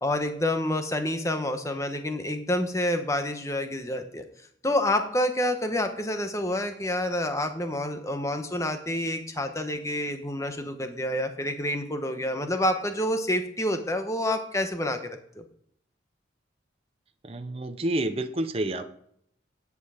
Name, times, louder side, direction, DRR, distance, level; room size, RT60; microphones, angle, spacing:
voice 1, 0.0-4.2 4.6-15.4, left 1 dB, 15° left, 7 dB, 1.0 m, -28 dB
voice 2, 17.2-18.9, right 1 dB, 30° right, 8 dB, 0.6 m, -29 dB
9.9 x 8.3 x 5.0 m, 0.66 s
head